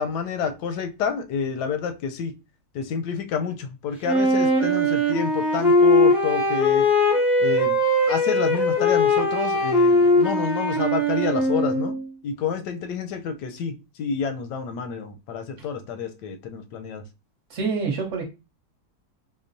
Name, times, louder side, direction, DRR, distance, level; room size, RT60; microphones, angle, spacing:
voice 1, 0.0-2.3 2.7-6.9 7.4-7.8 8.1-11.9 12.2-13.7 14.0-17.0, left 6 dB, 85° left, 1.2 m, -29 dB
Wind instrument woodwind instrument, 4.0-12.0, left 1 dB, ahead, 0.7 m, -20 dB
voice 2, 17.5-18.2, right 5 dB, 50° right, 1.1 m, -26 dB
6.0 x 2.0 x 2.5 m
omnidirectional pair, 1.8 m